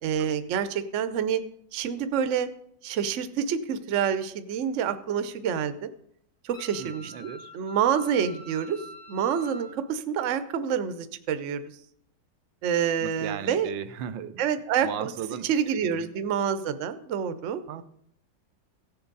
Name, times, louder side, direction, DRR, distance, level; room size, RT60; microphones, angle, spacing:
voice 1, 0.0-1.4 1.7-2.5 2.8-5.9 6.4-8.8 9.1-11.6 12.6-13.7 14.4-17.6, right 8 dB, 60° right, 11 dB, 0.8 m, -27 dB
Wind instrument woodwind instrument, 6.5-9.8, equal, 25° left, 0.9 m, -45 dB
voice 2, 6.8-7.5 13.0-14.4 14.8-16.1 17.7-17.8, right 9 dB, 90° right, 11 dB, 1.4 m, -37 dB
16.0 x 7.0 x 4.0 m, 0.69 s
omnidirectional pair, 2.0 m